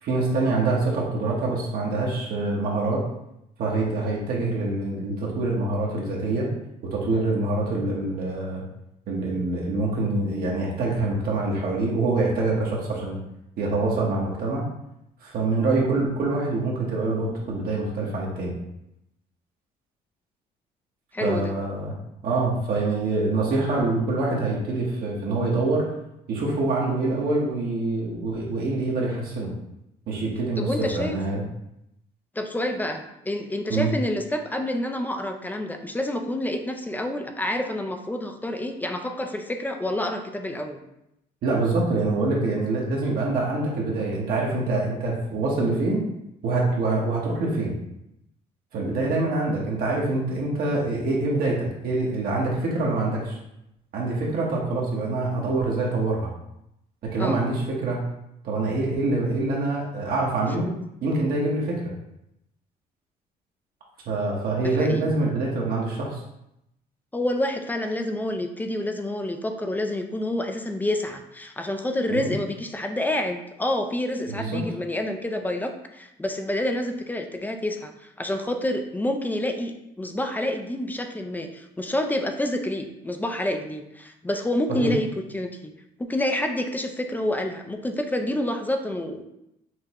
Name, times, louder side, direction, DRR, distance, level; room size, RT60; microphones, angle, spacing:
voice 1, 0.0-3.0 3.6-6.5 6.9-8.6 9.1-13.2 13.6-14.7 15.2-18.5 21.2-21.9 22.2-25.9 26.3-29.5 30.1-31.4 33.7-33.9 41.4-46.0 46.4-47.7 48.7-53.4 53.9-56.3 57.0-58.0 58.4-60.7 61.0-61.9 64.1-66.2 72.1-72.3 74.4-74.6 84.7-84.9, right 2 dB, 60° right, -3 dB, 1.0 m, -25 dB
voice 2, 21.1-21.5 30.6-31.2 32.4-40.8 57.2-57.4 64.8-65.1 67.1-85.1 85.3-85.7 86.0-89.2, left 1 dB, 10° left, 5 dB, 0.4 m, -28 dB
5.9 x 2.1 x 2.9 m, 0.83 s
cardioid pair, 110°, 17 cm